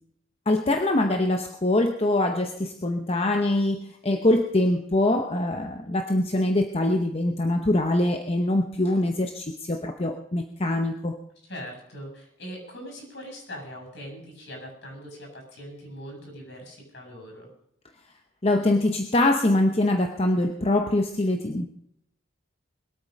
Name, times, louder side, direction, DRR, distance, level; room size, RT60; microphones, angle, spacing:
voice 1, 0.5-11.2 18.4-21.7, left 1 dB, 30° left, 6 dB, 0.8 m, -24 dB
voice 2, 11.4-17.5, equal, 55° left, 1 dB, 7.5 m, -41 dB
21.5 x 8.8 x 5.3 m, 0.73 s
head